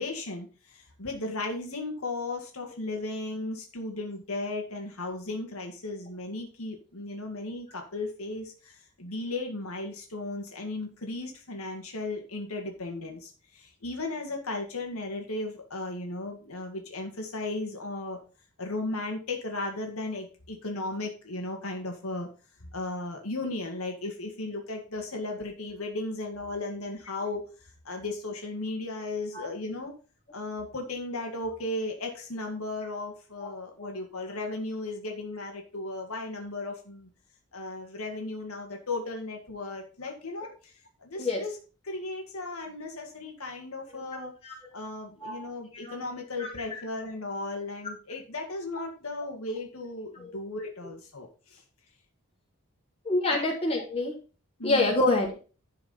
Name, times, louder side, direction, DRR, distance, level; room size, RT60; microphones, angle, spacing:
voice 1, 0.0-18.2 18.6-22.3 22.7-27.5 27.9-29.9 30.3-37.1 37.5-40.5 41.0-41.6 41.9-44.3 44.7-51.6 53.3-53.5 54.6-54.9, left 2 dB, 80° left, 2 dB, 2.0 m, -35 dB
voice 2, 43.9-44.6 45.2-45.5 45.8-46.0 46.4-46.5 53.0-54.1 54.6-55.4, left 2 dB, 25° left, -2 dB, 3.2 m, -27 dB
11.5 x 4.8 x 5.7 m, 0.35 s
head